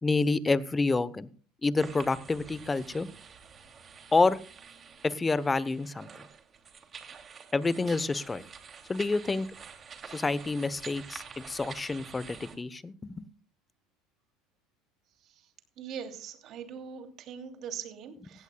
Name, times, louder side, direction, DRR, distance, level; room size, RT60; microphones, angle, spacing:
voice 1, 0.0-1.3 1.6-3.1 4.1-4.4 5.0-6.1 7.5-8.4 8.9-9.5 10.1-13.3, left 3 dB, 20° left, 17 dB, 0.9 m, -28 dB
sound 1, 1.8-12.6, right 6 dB, 35° right, 2.6 m, -48 dB
voice 2, 15.8-18.4, right 7 dB, 55° right, 5 dB, 2.8 m, -41 dB
17.0 x 15.5 x 2.3 m, 0.41 s
supercardioid pair, 95°, 0 cm